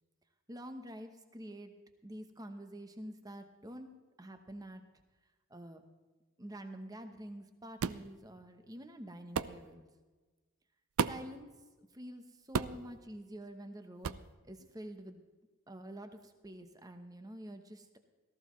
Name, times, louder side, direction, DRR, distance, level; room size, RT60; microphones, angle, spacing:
voice 1, 0.5-1.7 2.0-3.9 4.2-4.8 5.5-5.8 6.4-9.9 11.0-11.5 11.8-14.2 14.4-15.2 15.7-18.0, right 1 dB, 15° right, 7 dB, 0.9 m, -47 dB
sound 1, 7.8-8.1 9.3-9.6 11.0-11.3 12.5-12.9 14.0-14.3, right 6 dB, 70° right, 0.4 m, -33 dB
18.0 x 14.5 x 3.1 m, 1.3 s
head